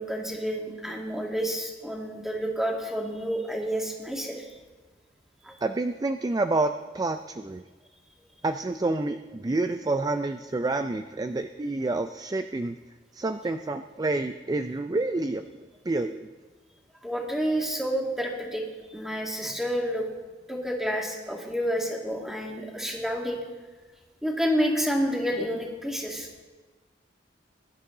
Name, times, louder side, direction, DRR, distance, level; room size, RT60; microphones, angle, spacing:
voice 1, 0.0-4.5 5.4-5.6 17.0-18.6 18.9-20.1 20.5-23.4 24.2-26.3, equal, ahead, -1 dB, 2.1 m, -29 dB
voice 2, 5.6-7.6 8.4-12.8 13.1-15.5 15.8-16.3, right 2 dB, 20° right, 8 dB, 0.4 m, -28 dB
21.5 x 11.0 x 3.9 m, 1.3 s
head